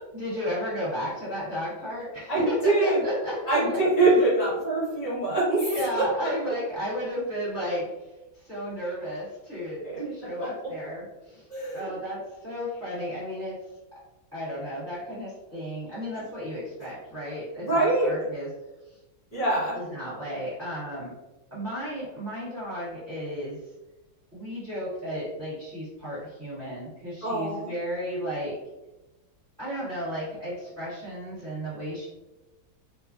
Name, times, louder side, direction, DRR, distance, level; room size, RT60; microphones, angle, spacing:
voice 1, 0.1-3.4 4.2-4.3 5.6-7.9 8.4-11.4 11.7-13.6 14.3-18.5 19.7-21.1 21.5-23.6 24.3-28.6 29.6-32.1, equal, 30° right, -11 dB, 1.0 m, -33 dB
voice 2, 2.3-3.1 3.4-5.7 5.9-6.1 6.5-6.6 9.8-10.1 10.4-10.7 11.5-11.9 17.6-18.1 19.3-19.8 27.2-27.7, right 2 dB, 50° left, -8 dB, 1.5 m, -24 dB
3.3 x 2.1 x 2.5 m, 1.0 s
omnidirectional pair, 2.1 m